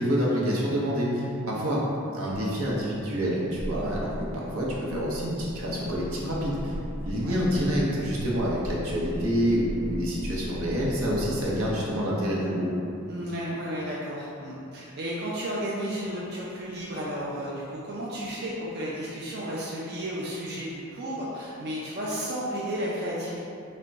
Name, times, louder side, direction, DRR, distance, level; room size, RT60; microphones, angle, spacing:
voice 1, 0.0-1.8 2.1-6.7 7.0-12.7, equal, 85° right, -5 dB, 0.8 m, -27 dB
sound 1, 2.3-11.4, equal, 25° left, 0.6 m, -38 dB
voice 2, 13.1-23.4, equal, 50° right, -6 dB, 0.4 m, -33 dB
3.4 x 2.1 x 3.9 m, 2.7 s
head